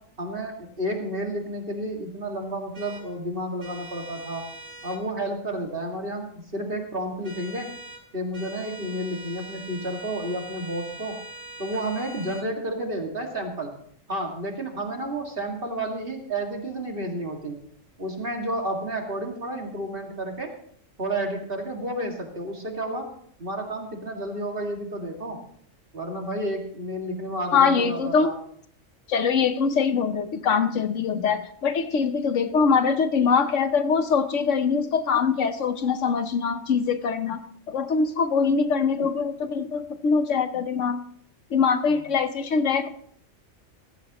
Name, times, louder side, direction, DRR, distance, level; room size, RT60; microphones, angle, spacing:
voice 1, 0.2-4.4 4.8-7.7 8.1-11.2 11.6-13.7 14.1-17.6 18.0-20.5 21.0-23.1 23.4-25.4 25.9-28.4 41.9-42.0, right 1 dB, 45° right, 2 dB, 2.3 m, -31 dB
sound 1, 2.7-3.0 3.6-5.0 7.2-8.0 8.3-12.5, right 2 dB, 90° right, 2.7 m, -42 dB
voice 2, 27.5-28.3 29.1-37.4 37.7-41.0 41.5-42.9, left 5 dB, 70° left, 10 dB, 1.1 m, -23 dB
15.0 x 15.0 x 3.0 m, 0.63 s
omnidirectional pair, 1.4 m